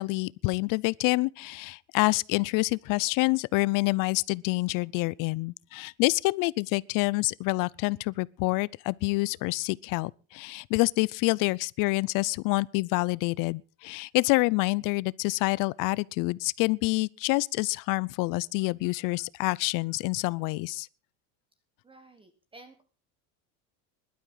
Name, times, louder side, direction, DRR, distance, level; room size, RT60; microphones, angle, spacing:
voice 1, 0.0-20.9, left 24 dB, 50° left, 0.6 m, -27 dB
voice 2, 21.8-22.8, right 2 dB, 15° right, 1.6 m, -52 dB
20.0 x 12.0 x 3.9 m
supercardioid pair, 140°, 40 cm